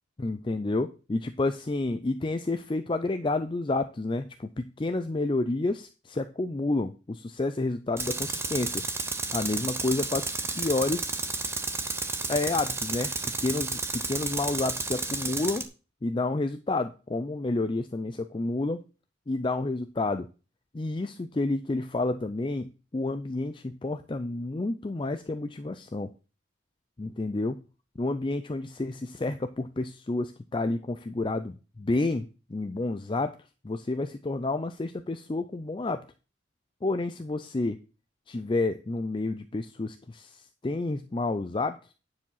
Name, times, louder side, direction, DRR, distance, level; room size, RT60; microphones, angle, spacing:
voice 1, 0.2-8.8 9.3-10.3 10.6-11.1 12.3-13.1 13.4-13.8 14.1-15.6 16.0-18.8 19.3-20.3 20.7-26.1 27.0-27.6 28.0-33.4 33.6-36.0 36.8-37.8 38.3-41.9, left 2 dB, 25° left, 9 dB, 0.4 m, -30 dB
Tools, 8.0-15.7, right 3 dB, 15° right, 0.8 m, -32 dB
9.6 x 4.9 x 5.6 m, 0.33 s
head